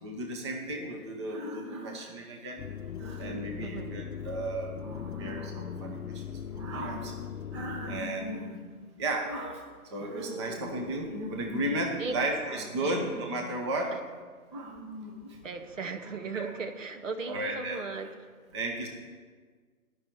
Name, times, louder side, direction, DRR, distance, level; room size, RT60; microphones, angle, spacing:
voice 1, 0.0-2.6 3.0-7.1 7.5-8.6 9.0-9.6 9.9-13.9 14.5-15.4 16.3-16.5 17.3-18.1 18.5-18.9, right 1 dB, 20° right, 1 dB, 1.0 m, -34 dB
sound 1, 2.6-8.0, left 8 dB, 75° left, 0.7 m, -39 dB
voice 2, 3.6-3.9 10.4-10.6 12.0-12.1 12.8-12.9 13.9-14.0 15.4-18.1, right 4 dB, 60° right, 7 dB, 1.0 m, -37 dB
11.0 x 6.2 x 8.7 m, 1.5 s
figure-of-eight pair, 150°, 44 cm